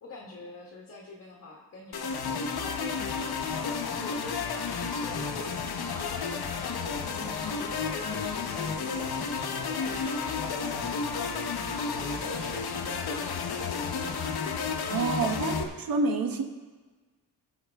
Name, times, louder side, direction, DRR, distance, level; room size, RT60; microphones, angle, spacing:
voice 1, 0.0-3.1 3.5-5.2 5.9-8.3 8.5-11.4 11.7-14.2 14.8-15.4, left 2 dB, 40° left, -2 dB, 1.5 m, -46 dB
sound 1, 1.9-15.6, left 5 dB, 75° left, 1.0 m, -32 dB
voice 2, 14.9-16.4, right 3 dB, 65° right, 5 dB, 1.1 m, -28 dB
19.0 x 6.3 x 3.5 m, 1.3 s
wide cardioid pair, 180°, 38 cm